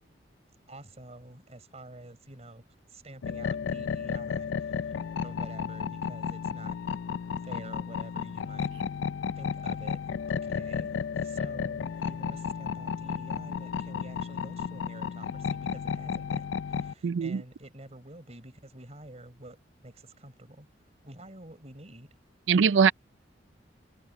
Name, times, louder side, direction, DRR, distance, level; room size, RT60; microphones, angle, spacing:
voice 1, 0.7-6.8 7.4-8.7 9.4-19.6 19.8-20.7 21.0-22.1, right 1 dB, 35° right, 4.3 m, -48 dB
sound 1, 3.2-16.9, left 6 dB, 85° left, 0.4 m, -33 dB
voice 2, 17.0-17.4 22.5-22.9, right 6 dB, 90° right, 0.4 m, -22 dB
head